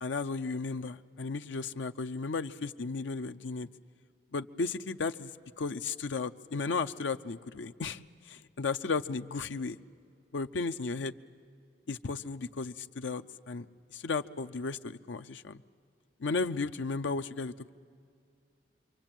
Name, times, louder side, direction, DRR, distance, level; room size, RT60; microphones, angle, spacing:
voice 1, 0.0-3.7 4.3-5.3 5.6-8.0 8.3-9.8 10.3-11.1 11.9-13.7 13.9-15.6 16.2-17.7, left 4 dB, 80° left, 8 dB, 0.6 m, -34 dB
26.5 x 23.5 x 9.0 m, 2.3 s
head